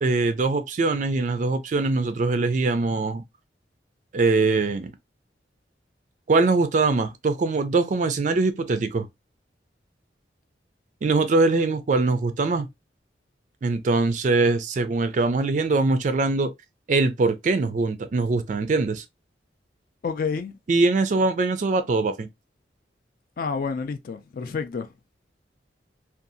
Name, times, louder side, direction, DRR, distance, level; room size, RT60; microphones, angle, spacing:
voice 1, 0.0-3.2 4.1-4.9 6.3-9.1 11.0-12.7 13.6-16.5 16.9-19.0 20.7-22.3, right 3 dB, 45° right, 0.3 m, -22 dB
voice 2, 20.0-20.6 23.4-24.9, left 5 dB, 50° left, 0.4 m, -29 dB
2.6 x 2.3 x 2.5 m
head